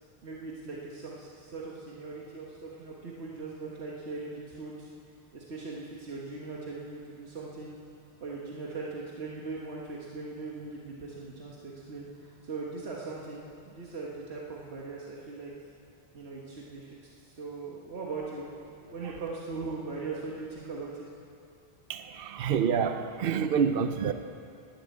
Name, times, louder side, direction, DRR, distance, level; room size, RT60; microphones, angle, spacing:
voice 1, 0.2-4.9 5.3-7.8 8.2-15.5 16.1-16.9 17.2-18.5 18.9-21.1, right 3 dB, 90° right, -4 dB, 1.7 m, -40 dB
voice 2, 21.9-24.1, right 7 dB, 65° right, 9 dB, 0.8 m, -27 dB
12.0 x 10.5 x 8.4 m, 2.4 s
omnidirectional pair, 1.1 m